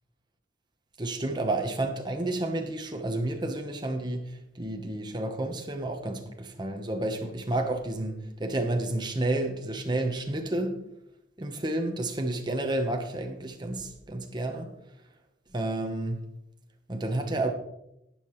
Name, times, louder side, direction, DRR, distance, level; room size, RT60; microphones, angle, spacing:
voice 1, 1.0-10.8 11.4-14.7 15.5-16.2 16.9-17.5, right 2 dB, 25° right, 1.1 m, -30 dB
13.0 x 8.8 x 3.2 m
head